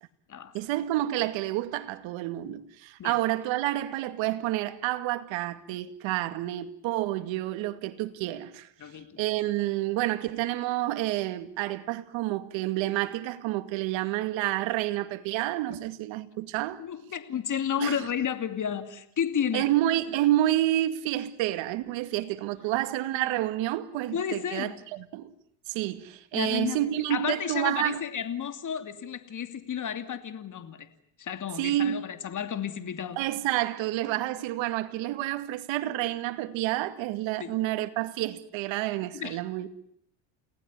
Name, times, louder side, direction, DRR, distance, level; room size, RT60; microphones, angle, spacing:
voice 1, 0.5-8.7 9.2-16.8 17.8-18.1 19.5-25.3 25.7-28.0 31.6-32.0 33.2-39.7, right 14 dB, 75° right, 2.4 m, -29 dB
voice 2, 8.8-9.2 16.8-19.7 24.1-24.8 26.3-30.9 31.2-33.2 37.4-37.6 39.1-39.4, left 8 dB, 40° left, 2.8 m, -32 dB
29.5 x 18.5 x 9.8 m
supercardioid pair, 95°, 46 cm